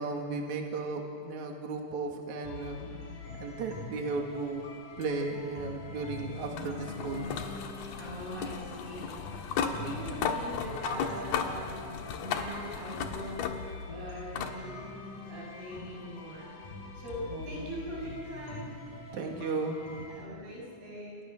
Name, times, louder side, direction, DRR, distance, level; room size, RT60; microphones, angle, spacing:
voice 1, 0.0-2.8 3.4-4.6 5.0-7.3 9.6-10.0 17.3-17.5 19.1-20.2, right 3 dB, 55° right, 2 dB, 3.6 m, -35 dB
sound 1, 2.4-20.3, left 3 dB, 65° left, 4.7 m, -44 dB
sound 2, 5.0-13.9 14.4-14.6 15.9-16.0 18.9-19.0, left 6 dB, 90° left, 3.3 m, -36 dB
voice 2, 8.0-13.6 13.9-14.8 15.3-16.5 16.9-18.8 20.1-21.2, equal, 85° right, -4 dB, 9.4 m, -42 dB
29.5 x 29.0 x 6.3 m, 2.3 s
omnidirectional pair, 4.3 m